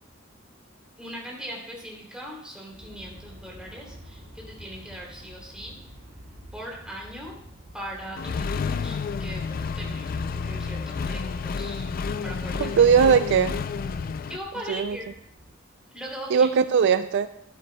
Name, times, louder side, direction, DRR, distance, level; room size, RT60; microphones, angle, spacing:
voice 1, 1.0-5.8 6.5-7.4 7.7-11.8 12.2-12.9 14.3-15.1 15.9-16.5, equal, 5° right, -3 dB, 2.9 m, -39 dB
Aircraft, 2.7-15.5, equal, 85° right, 1.9 m, -48 dB
Accelerating revving vroom, 8.2-14.4, left 5 dB, 45° left, 0.4 m, -30 dB
voice 2, 12.6-13.6 14.7-15.0 16.3-17.3, right 6 dB, 60° right, 12 dB, 0.3 m, -19 dB
12.5 x 12.0 x 2.2 m, 0.73 s
head